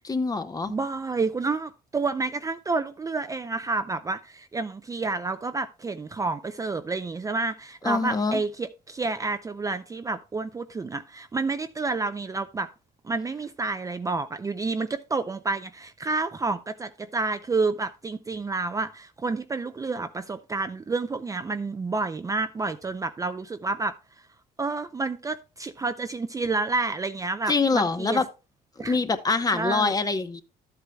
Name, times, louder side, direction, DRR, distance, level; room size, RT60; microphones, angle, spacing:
voice 1, 0.0-0.7 7.8-8.4 27.5-28.2 28.8-30.4, left 4 dB, 20° left, 0.9 m, -25 dB
voice 2, 0.7-12.7 13.0-24.3 24.6-28.2 28.8-29.0 29.5-29.9, right 3 dB, 20° right, 0.4 m, -29 dB
12.5 x 8.0 x 2.3 m
cardioid pair, 110°, 17 cm